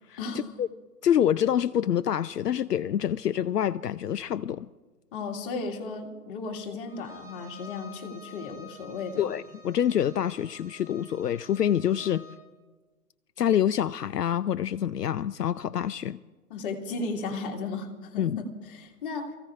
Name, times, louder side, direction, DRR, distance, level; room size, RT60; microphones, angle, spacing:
voice 1, 0.2-0.5 5.1-9.3 16.5-19.4, left 3 dB, 35° left, 1.9 m, -35 dB
voice 2, 1.0-4.7 9.2-12.2 13.4-16.2 18.2-18.4, left 10 dB, 80° left, 0.5 m, -26 dB
Bowed string instrument, 6.9-12.5, left 2 dB, 15° right, 5.1 m, -50 dB
28.0 x 15.5 x 2.4 m
figure-of-eight pair, 130°, 47 cm